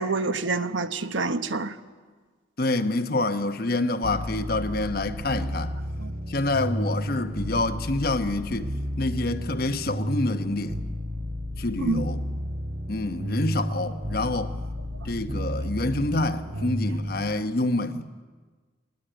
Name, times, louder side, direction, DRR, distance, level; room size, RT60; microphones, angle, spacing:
voice 1, 0.0-1.7 6.0-6.1 11.8-12.0, right 3 dB, 75° right, 1.1 m, -27 dB
voice 2, 2.6-5.8 6.3-8.7 9.0-10.8 11.6-12.2 12.9-14.5 15.0-18.1, left 2 dB, 50° left, 1.1 m, -27 dB
sound 1, 4.0-17.4, equal, 60° right, 2.9 m, -32 dB
20.0 x 19.5 x 9.2 m
head